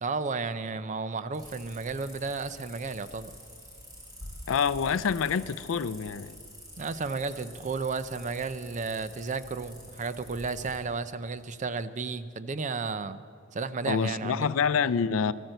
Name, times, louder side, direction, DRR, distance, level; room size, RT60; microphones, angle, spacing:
voice 1, 0.0-3.3 6.8-13.2 13.5-14.5, right 4 dB, 40° right, 0.5 m, -33 dB
sound 1, 1.3-10.8, equal, 20° right, 4.1 m, -47 dB
voice 2, 4.5-6.4 13.9-15.3, left 6 dB, 85° left, 0.4 m, -27 dB
13.0 x 12.5 x 7.9 m
head